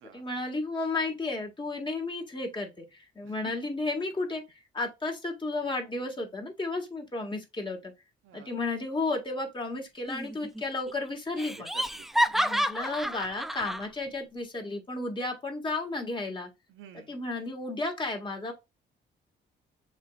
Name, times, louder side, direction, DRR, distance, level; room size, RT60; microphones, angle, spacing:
voice 1, 0.1-4.4 4.7-7.9 8.3-11.7 12.3-16.5 16.9-18.5, left 2 dB, 25° left, 1.8 m, -33 dB
Laughter, 10.1-10.6 10.9-11.0 11.4-13.9, equal, ahead, 0.3 m, -29 dB
voice 2, 11.5-12.4 16.7-17.1, right 9 dB, 80° right, 0.7 m, -51 dB
7.3 x 2.9 x 2.4 m
cardioid pair, 90°, 20 cm